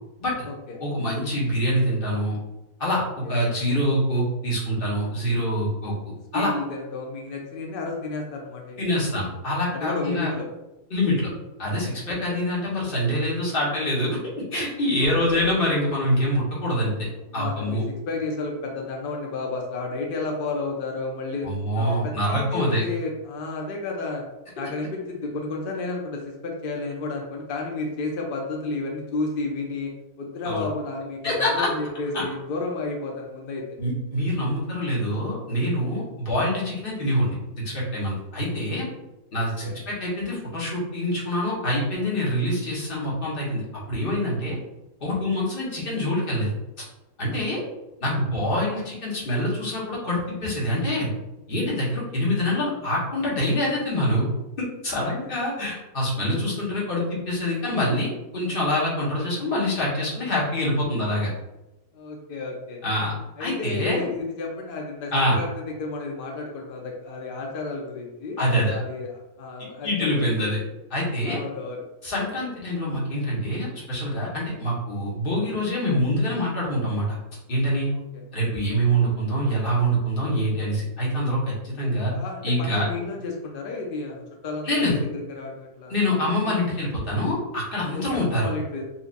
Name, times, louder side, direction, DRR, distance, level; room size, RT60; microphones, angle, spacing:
voice 1, 0.8-2.4 2.8-5.9 6.3-6.5 8.8-10.3 10.9-11.3 11.6-14.2 14.5-17.1 17.3-17.8 21.4-22.8 30.4-30.7 31.2-31.7 32.1-32.2 33.8-37.3 37.6-38.9 39.3-43.6 43.9-44.6 45.0-46.5 47.2-47.6 48.0-51.1 51.5-54.2 54.8-61.3 62.8-63.1 63.4-64.1 65.1-65.4 68.4-68.8 69.8-70.6 70.9-71.4 72.0-77.2 77.5-77.9 78.3-82.1 82.4-82.8 84.6-85.0 85.9-88.5, equal, 40° left, -6 dB, 1.3 m, -25 dB
voice 2, 6.3-8.8 9.7-10.5 12.1-12.4 15.0-15.5 17.3-21.5 21.8-24.2 24.6-29.9 30.2-33.6 39.6-39.8 47.3-47.6 55.0-55.3 61.9-62.8 63.4-70.4 71.2-71.8 82.1-86.5 87.9-88.8, left 3 dB, 75° left, 0 dB, 0.5 m, -32 dB
4.3 x 2.5 x 2.5 m, 0.98 s
omnidirectional pair, 1.5 m